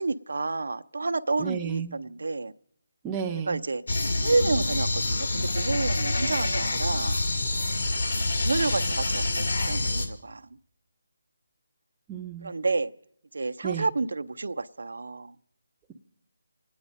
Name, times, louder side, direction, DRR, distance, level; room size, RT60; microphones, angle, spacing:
voice 1, 0.0-2.5 3.5-3.8 4.2-7.2 8.4-10.5 12.4-12.9 13.3-15.3, right 3 dB, 75° right, 10 dB, 0.6 m, -29 dB
voice 2, 1.4-1.9 3.0-3.6 12.1-12.5 13.6-13.9, right 8 dB, 10° right, 2 dB, 0.6 m, -32 dB
sound 1, 3.9-10.1, left 2 dB, 65° left, 2.4 m, -27 dB
25.0 x 9.5 x 5.3 m, 0.71 s
hypercardioid pair, 170°, 0 cm